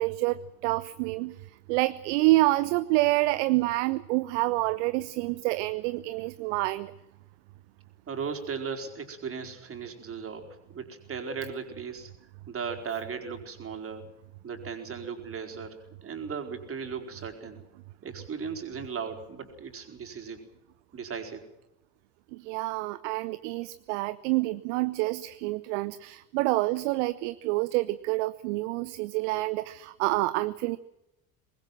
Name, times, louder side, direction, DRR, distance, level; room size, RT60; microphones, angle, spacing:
voice 1, 0.0-1.4 1.7-6.9 22.3-30.8, right 19 dB, 55° right, 15 dB, 0.8 m, -27 dB
voice 2, 8.1-12.1 12.5-14.0 14.4-17.6 18.0-20.4 20.9-21.4, right 6 dB, 30° right, 3 dB, 4.6 m, -37 dB
24.0 x 20.5 x 7.7 m, 0.91 s
figure-of-eight pair, 60°, 43 cm